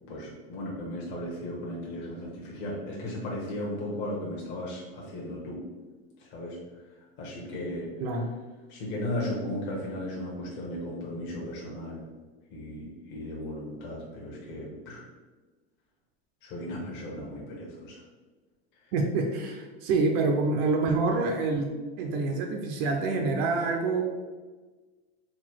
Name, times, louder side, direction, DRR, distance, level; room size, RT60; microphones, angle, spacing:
voice 1, 0.0-5.6 6.2-6.6 7.2-7.9 8.7-12.0 12.5-15.0 16.4-18.0 18.8-18.9, left 1 dB, 35° left, -4 dB, 1.0 m, -36 dB
voice 2, 18.9-21.7 22.0-24.0, right 3 dB, 40° right, 2 dB, 0.5 m, -26 dB
4.0 x 2.3 x 4.5 m, 1.3 s
supercardioid pair, 160°, 30 cm